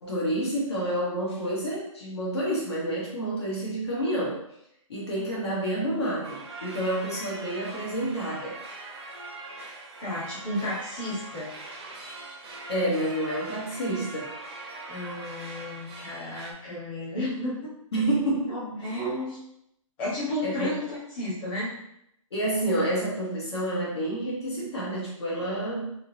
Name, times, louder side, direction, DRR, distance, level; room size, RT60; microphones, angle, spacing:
voice 1, 0.0-4.4 4.9-8.6 12.7-14.3 17.9-18.6 18.8-19.0 20.4-20.7 22.3-25.9, right 1 dB, 50° left, -5 dB, 1.2 m, -29 dB
sound 1, 6.2-16.5, right 2 dB, 50° right, 0.8 m, -42 dB
voice 2, 10.0-11.5 14.9-17.7 18.5-19.4 20.0-21.7, left 1 dB, 20° left, -10 dB, 1.2 m, -32 dB
3.6 x 2.8 x 2.8 m, 0.76 s
hypercardioid pair, 170°, 18 cm